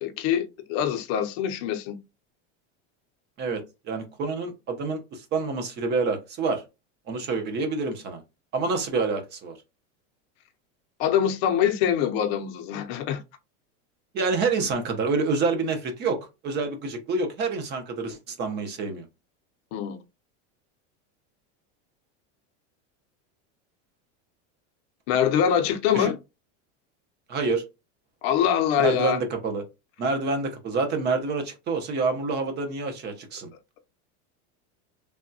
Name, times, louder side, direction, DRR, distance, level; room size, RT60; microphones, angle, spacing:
voice 1, 0.0-2.0 11.0-13.2 19.7-20.0 25.1-26.2 28.2-29.2, left 9 dB, 55° left, 0.6 m, -24 dB
voice 2, 3.4-6.6 7.1-8.2 8.5-9.6 14.1-19.0 25.9-26.1 27.3-27.6 28.8-29.6 30.0-33.5, right 4 dB, 30° right, 0.6 m, -27 dB
3.4 x 2.2 x 2.6 m
supercardioid pair, 155°, 37 cm